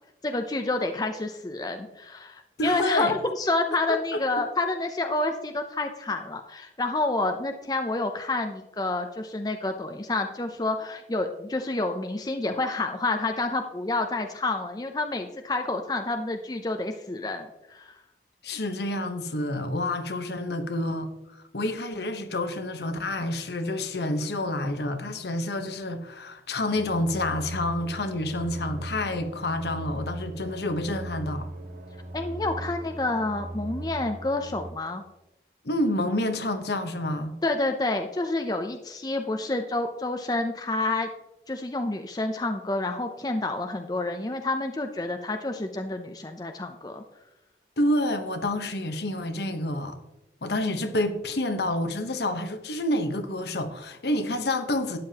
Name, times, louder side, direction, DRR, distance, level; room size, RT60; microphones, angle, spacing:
voice 1, 0.2-18.0 32.1-35.0 37.4-41.1 41.5-47.0, left 2 dB, 20° left, 0.5 m, -29 dB
voice 2, 2.6-3.2 3.9-4.4 18.4-21.1 21.5-31.5 35.6-37.3 47.8-50.0 50.4-55.0, left 1 dB, 65° left, 1.0 m, -28 dB
sound 1, 26.7-34.7, right 1 dB, 45° right, 0.9 m, -38 dB
12.5 x 9.3 x 2.9 m
head